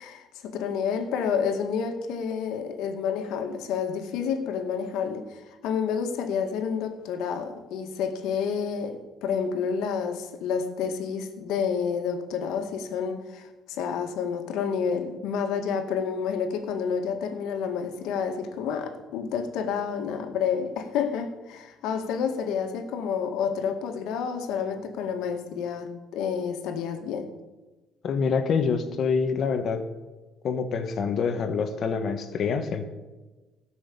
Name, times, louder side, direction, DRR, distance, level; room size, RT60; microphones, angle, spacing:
voice 1, 0.0-27.3, left 6 dB, 80° left, 6 dB, 1.9 m, -29 dB
voice 2, 28.0-29.8 30.4-32.9, left 5 dB, 45° left, 7 dB, 1.5 m, -26 dB
16.5 x 6.3 x 8.6 m, 1.2 s
cardioid pair, 155°, 0 cm